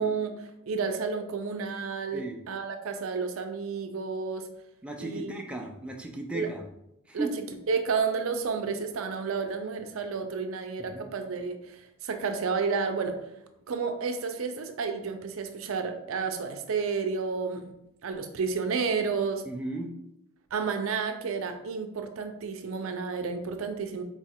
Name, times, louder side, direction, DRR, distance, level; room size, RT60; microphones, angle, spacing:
voice 1, 0.0-4.4 5.0-5.3 6.3-6.5 7.1-7.3 7.7-13.1 13.7-17.7 18.0-19.4 20.5-24.0, right 5 dB, 70° right, 6 dB, 0.5 m, -31 dB
voice 2, 4.8-6.6 7.1-7.4 10.8-11.1 19.5-19.9, right 2 dB, 5° right, 1 dB, 0.4 m, -35 dB
3.9 x 2.4 x 4.3 m, 0.84 s
head